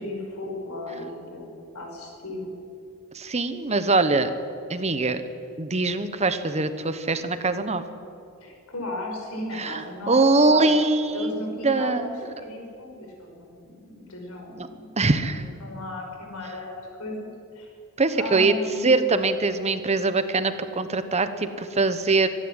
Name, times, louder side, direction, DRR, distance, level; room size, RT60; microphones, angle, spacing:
voice 1, 0.0-2.6 8.4-10.7 11.1-12.0 12.4-14.9 15.2-17.3 17.5-17.7 18.1-19.0, left 1 dB, 75° left, 1 dB, 5.4 m, -35 dB
voice 2, 3.1-4.3 4.7-5.2 5.6-7.8 9.5-11.4 11.6-12.2 14.6-14.7 15.0-15.4 18.0-18.5 18.8-22.3, right 3 dB, 30° right, 10 dB, 1.1 m, -22 dB
25.5 x 11.0 x 9.8 m, 2.5 s
head